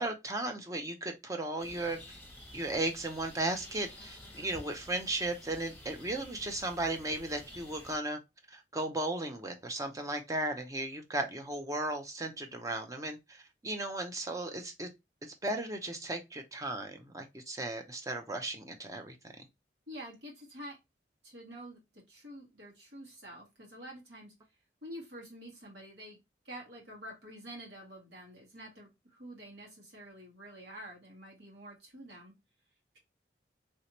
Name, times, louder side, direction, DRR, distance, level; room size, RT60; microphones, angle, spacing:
voice 1, 0.0-2.0 2.5-8.2 8.5-14.9 15.2-19.2, right 2 dB, 20° right, 0.5 m, -36 dB
sound 1, 1.6-8.0, left 1 dB, 10° left, 1.2 m, -51 dB
voice 2, 19.9-20.8 21.2-21.8 22.1-24.3 24.8-26.2 26.5-32.3, equal, 85° right, 1.8 m, -48 dB
3.2 x 2.8 x 2.9 m
head